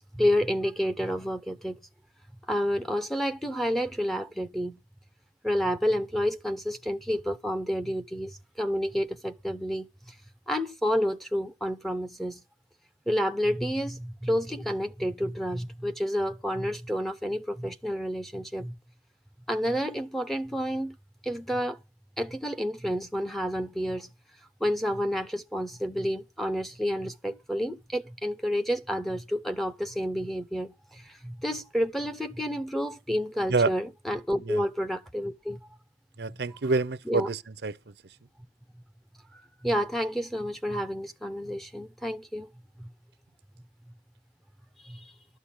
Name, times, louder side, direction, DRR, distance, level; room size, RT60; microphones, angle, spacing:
voice 1, 0.1-1.8 2.5-4.8 5.4-9.9 10.5-12.4 13.1-18.7 19.5-21.0 21.2-21.8 22.2-24.1 24.6-35.6 37.1-37.3 39.6-42.5 42.8-42.9 44.8-45.1, equal, ahead, 0.6 m, -29 dB
voice 2, 36.2-37.8, right 3 dB, 65° right, 0.6 m, -27 dB
12.5 x 6.4 x 7.2 m
head